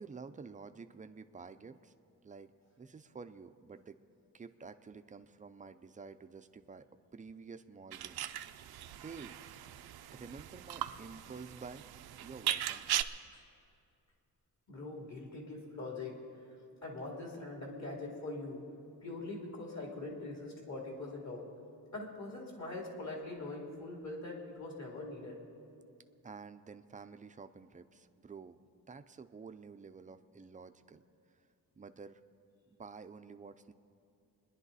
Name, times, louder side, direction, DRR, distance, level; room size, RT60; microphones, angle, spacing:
voice 1, 0.0-1.9 2.2-2.5 2.8-4.0 4.3-6.9 7.1-8.2 9.0-9.4 10.1-11.9 12.2-12.8 26.2-28.6 28.9-31.0 31.8-32.2 32.7-33.7, right 5 dB, 20° right, 10 dB, 0.4 m, -50 dB
sound 1, 7.9-13.0, right 12 dB, 85° right, 0.6 m, -39 dB
voice 2, 14.7-16.2 16.8-18.6 19.0-21.4 21.9-25.4, left 2 dB, 50° left, -1 dB, 2.9 m, -42 dB
27.5 x 11.0 x 4.1 m, 2.6 s
wide cardioid pair, 170°, 36 cm